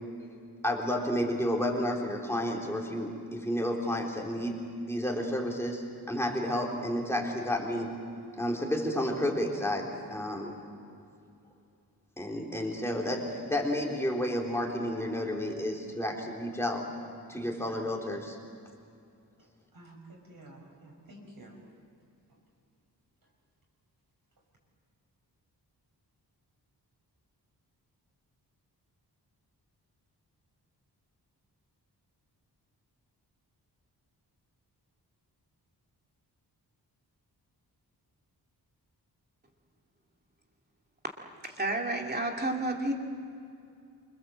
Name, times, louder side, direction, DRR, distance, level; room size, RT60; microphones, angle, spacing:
voice 1, 0.6-4.6 4.8-7.9 8.4-10.6 12.2-16.9 17.3-18.4, left 1 dB, 5° left, -1 dB, 3.7 m, -31 dB
voice 2, 19.7-21.6 22.3-22.4, right 1 dB, 55° right, -1 dB, 6.2 m, -51 dB
voice 3, 41.4-42.9, right 2 dB, 25° right, 1 dB, 2.6 m, -30 dB
27.5 x 25.5 x 7.7 m, 2.4 s
wide cardioid pair, 165°, 40 cm